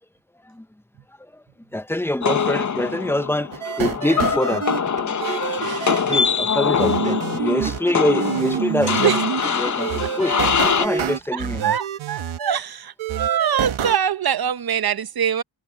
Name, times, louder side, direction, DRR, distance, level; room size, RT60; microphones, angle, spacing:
voice 1, 1.7-3.5 3.8-4.6 6.0-9.1 9.5-10.4 10.8-11.7, left 1 dB, 5° left, 0.7 m, -24 dB
sound 1, 2.2-10.9, left 6 dB, 40° left, 0.9 m, -23 dB
sound 2, 3.5-4.8 5.2-6.0 6.8-7.8 8.1-9.4 9.8-12.6 13.0-14.0, right 9 dB, 80° right, 1.4 m, -27 dB
sound 3, 4.1-11.2, right 2 dB, 15° right, 1.8 m, -35 dB
voice 2, 5.3-6.1 9.0-9.2 11.3-15.4, right 9 dB, 50° right, 0.9 m, -24 dB
cardioid pair, 65°, 47 cm